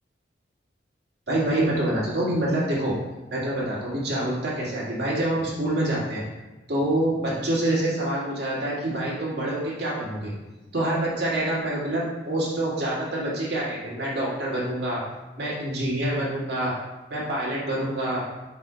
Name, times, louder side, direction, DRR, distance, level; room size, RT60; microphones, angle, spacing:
voice 1, 1.3-2.9 3.3-6.2 6.7-10.3 10.7-15.0 15.4-16.7 17.1-18.2, right 1 dB, 60° right, -6 dB, 2.0 m, -26 dB
5.3 x 4.1 x 5.1 m, 1.1 s
head